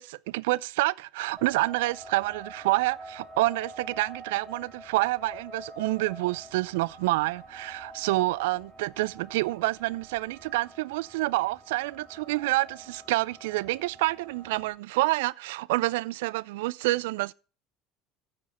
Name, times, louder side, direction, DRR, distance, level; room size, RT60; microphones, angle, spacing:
voice 1, 0.0-17.3, right 20 dB, 75° right, 0.3 m, -28 dB
sound 1, 1.4-14.7, right 1 dB, 10° right, 4.4 m, -47 dB
14.5 x 5.1 x 4.2 m
hypercardioid pair, 70°, 0 cm